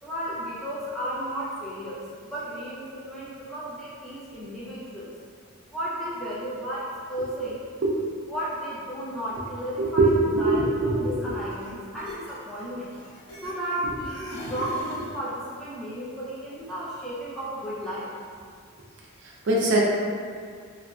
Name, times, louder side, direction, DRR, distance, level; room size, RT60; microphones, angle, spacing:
voice 1, 0.0-5.1 5.7-7.6 8.3-12.9 13.4-18.1, right 1 dB, ahead, -9 dB, 0.4 m, -33 dB
voice 2, 9.8-11.3 19.2-19.8, right 2 dB, 55° right, -4 dB, 0.4 m, -22 dB
sound 1, 11.5-11.7 12.0-13.8 14.1-15.2, equal, 70° left, 0.8 m, -40 dB
2.9 x 2.5 x 2.2 m, 2.1 s
head